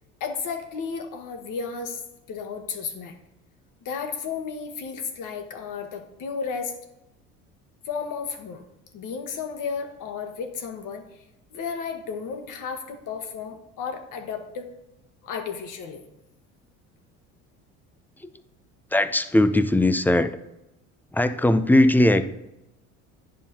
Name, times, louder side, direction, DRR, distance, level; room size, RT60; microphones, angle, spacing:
voice 1, 0.2-2.0 2.3-3.1 3.8-6.7 7.8-8.6 8.9-11.0 11.5-14.7 15.2-16.0, left 6 dB, 55° left, 6 dB, 1.2 m, -33 dB
voice 2, 18.9-20.4 21.1-22.2, left 1 dB, 5° left, 12 dB, 0.4 m, -19 dB
10.0 x 5.6 x 2.8 m, 0.88 s
hypercardioid pair, 70°, 38 cm